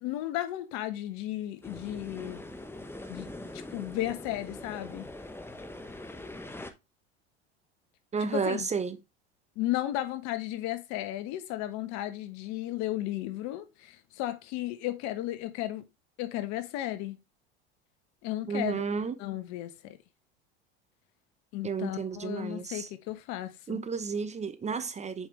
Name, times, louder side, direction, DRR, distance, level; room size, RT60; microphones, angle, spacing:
voice 1, 0.0-2.4 3.1-5.1 8.2-8.7 9.6-15.8 16.2-17.2 18.2-18.8 19.2-20.0 21.5-23.8, left 14 dB, 60° left, 1.3 m, -34 dB
sound 1, 1.6-6.7, left 1 dB, 5° left, 1.1 m, -43 dB
voice 2, 8.1-9.0 18.5-19.2 21.6-22.9 23.7-25.3, right 5 dB, 20° right, 0.8 m, -32 dB
7.8 x 5.2 x 3.2 m
hypercardioid pair, 85°, 32 cm